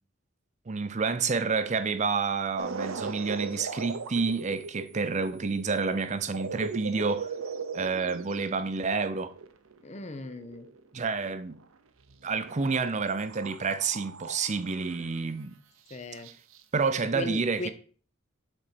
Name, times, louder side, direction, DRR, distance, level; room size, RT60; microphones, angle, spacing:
voice 1, 0.7-7.3 7.7-9.3 10.9-11.6 12.2-15.5 16.7-17.7, right 4 dB, 35° right, 0.5 m, -29 dB
sound 1, 2.6-11.6 12.0-12.8 13.1-15.2 15.9-16.0 16.2-16.6, right 5 dB, 85° right, 0.7 m, -39 dB
voice 2, 9.8-10.7 15.9-16.3 17.1-17.7, left 1 dB, 35° left, 0.7 m, -37 dB
6.1 x 4.2 x 6.0 m
head